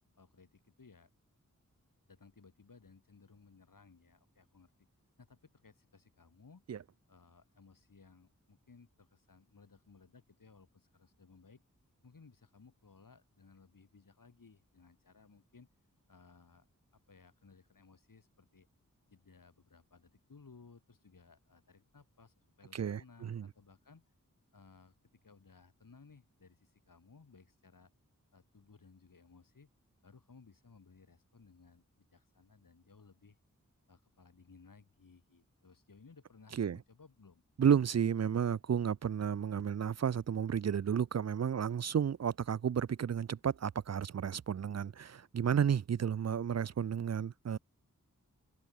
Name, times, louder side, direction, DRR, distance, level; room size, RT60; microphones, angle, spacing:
voice 1, 0.2-1.1 2.1-4.9 5.2-6.6 7.1-11.6 12.0-15.7 16.1-16.7 16.9-18.7 19.1-24.1 24.5-27.9 28.3-29.7 30.0-33.4 33.9-37.4, left 4 dB, 85° left, 4.5 m, -61 dB
voice 2, 22.7-23.5 36.6-36.8 37.6-47.6, right 8 dB, 55° right, 0.4 m, -32 dB
open air
wide cardioid pair, 75°, 32 cm